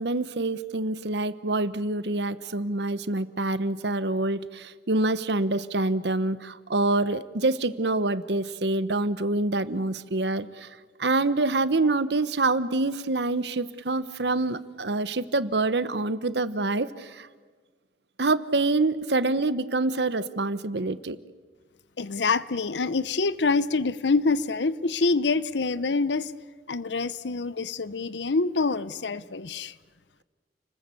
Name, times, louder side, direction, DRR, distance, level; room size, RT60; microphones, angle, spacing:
voice 1, 0.0-10.7 11.0-17.3 18.2-21.2, right 2 dB, 75° right, 14 dB, 1.1 m, -26 dB
voice 2, 22.0-26.3 26.7-29.7, left 4 dB, 85° left, 17 dB, 0.8 m, -26 dB
30.0 x 20.5 x 8.5 m, 1.5 s
head